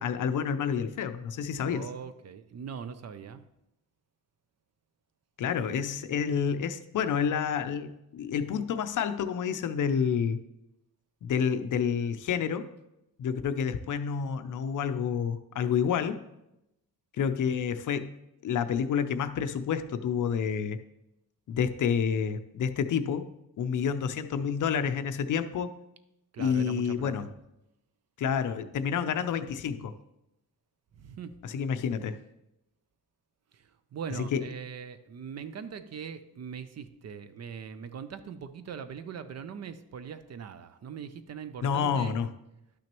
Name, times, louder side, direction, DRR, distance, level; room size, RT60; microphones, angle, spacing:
voice 1, 0.0-1.9 5.4-10.4 11.2-12.7 13.2-16.2 17.2-18.1 18.4-20.8 21.5-23.2 23.6-25.7 26.4-27.3 28.2-29.9 31.4-32.2 34.3-34.4 41.6-42.3, left 7 dB, 55° left, 10 dB, 0.5 m, -29 dB
voice 2, 1.6-3.4 26.3-27.3 31.0-31.4 33.5-42.2, right 7 dB, 45° right, 12 dB, 0.4 m, -41 dB
11.5 x 6.0 x 3.0 m, 0.87 s
wide cardioid pair, 160°, 37 cm